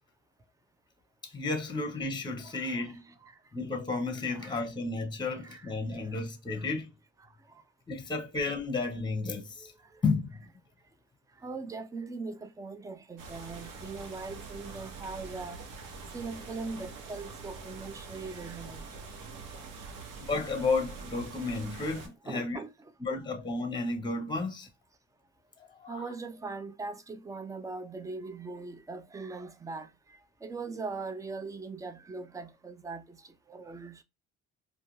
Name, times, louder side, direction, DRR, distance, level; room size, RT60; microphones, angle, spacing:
voice 1, 1.3-3.0 3.5-6.9 7.9-9.7 10.0-10.3 20.3-22.6 23.0-24.7 25.8-26.1, left 3 dB, 15° left, 0.7 m, -32 dB
voice 2, 2.4-2.9 3.2-3.3 4.3-4.6 5.4-5.7 6.6-6.7 11.4-15.6 16.1-18.9 19.8-19.9 22.3-22.7 25.9-29.9 30.4-33.2 33.5-34.0, right 3 dB, 10° right, 0.3 m, -40 dB
sound 1, 13.2-22.1, right 4 dB, 75° right, 0.9 m, -44 dB
2.4 x 2.3 x 2.9 m
supercardioid pair, 85°, 35 cm